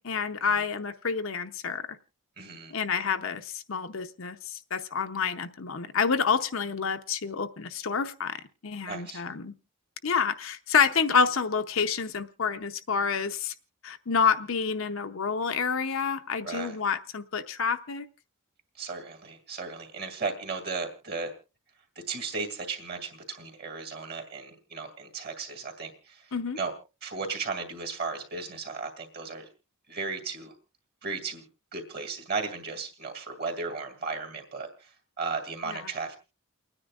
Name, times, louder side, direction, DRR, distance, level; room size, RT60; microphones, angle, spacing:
voice 1, 0.0-1.8 2.7-8.4 8.6-9.5 10.0-13.5 13.8-18.1 26.3-26.6 35.7-35.8, left 6 dB, 60° left, 8 dB, 0.7 m, -28 dB
voice 2, 2.4-2.7 8.9-9.2 16.4-16.8 18.8-21.3 22.1-26.7 27.0-29.5 29.9-30.5 31.0-31.4 31.7-36.2, right 4 dB, 45° right, 4 dB, 2.3 m, -35 dB
29.5 x 9.8 x 2.4 m, 0.30 s
head